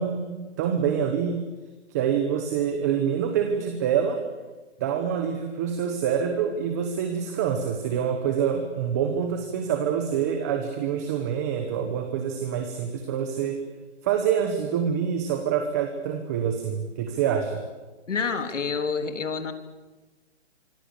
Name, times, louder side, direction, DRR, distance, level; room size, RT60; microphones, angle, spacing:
voice 1, 0.0-1.4 1.9-4.2 4.8-13.6 14.0-17.6, right 8 dB, 15° right, 6 dB, 1.2 m, -26 dB
voice 2, 18.1-19.5, left 5 dB, 85° left, 8 dB, 3.7 m, -28 dB
26.0 x 25.0 x 8.4 m, 1.2 s
hypercardioid pair, 175°, 36 cm